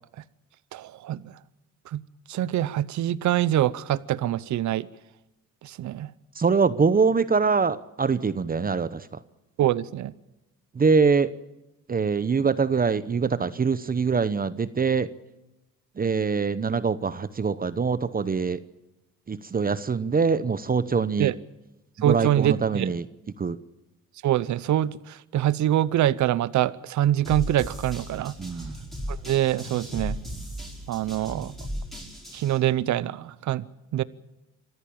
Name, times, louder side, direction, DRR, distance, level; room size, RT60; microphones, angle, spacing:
voice 1, 0.7-1.2 1.9-2.0 2.3-4.9 5.6-6.1 9.6-10.1 21.2-21.3 22.0-22.9 24.2-28.3 29.1-30.2 30.9-31.5 32.3-33.6 33.9-34.0, right 12 dB, 70° right, 19 dB, 0.8 m, -24 dB
voice 2, 6.4-9.1 10.7-11.3 11.9-15.1 16.0-18.6 19.3-21.3 22.0-23.1 23.4-23.6 28.4-28.7, right 5 dB, 30° right, 15 dB, 0.9 m, -24 dB
sound 1, 27.2-32.6, equal, ahead, 5.9 m, -36 dB
26.0 x 14.0 x 8.7 m, 0.96 s
cardioid pair, 90°, 30 cm